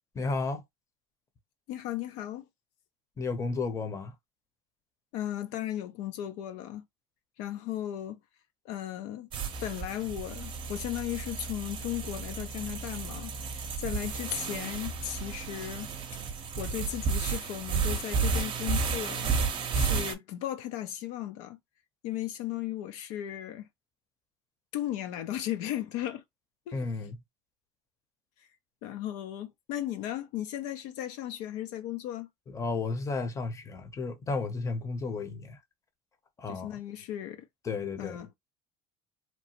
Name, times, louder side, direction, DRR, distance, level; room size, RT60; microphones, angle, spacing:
voice 1, 0.1-0.6 3.2-4.1 26.7-27.2 32.5-35.6 36.4-36.8 37.6-38.2, left 4 dB, 25° left, 0.7 m, -33 dB
voice 2, 1.7-2.5 5.1-6.8 7.4-8.2 8.6-9.3 9.6-15.9 16.6-19.3 19.7-21.6 22.0-23.7 24.7-26.2 26.7-26.8 28.8-32.3 36.5-37.5 38.0-38.3, left 12 dB, 75° left, 0.5 m, -36 dB
sound 1, 9.3-20.1, right 5 dB, 40° right, 0.7 m, -32 dB
2.9 x 2.1 x 2.8 m
supercardioid pair, 115°, 13 cm